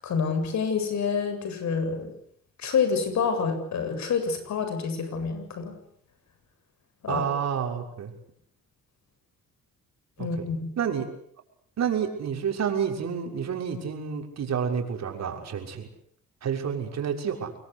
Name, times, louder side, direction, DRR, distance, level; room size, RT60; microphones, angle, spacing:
voice 1, 0.0-2.1 2.6-5.8 7.0-7.2 10.2-10.7, left 5 dB, 65° left, 8 dB, 7.9 m, -27 dB
voice 2, 7.1-8.1 10.2-10.3 10.8-11.1 11.8-15.9 16.4-17.6, right 7 dB, 60° right, 3 dB, 6.4 m, -29 dB
27.5 x 21.5 x 8.5 m, 0.66 s
cardioid pair, 90°, 30 cm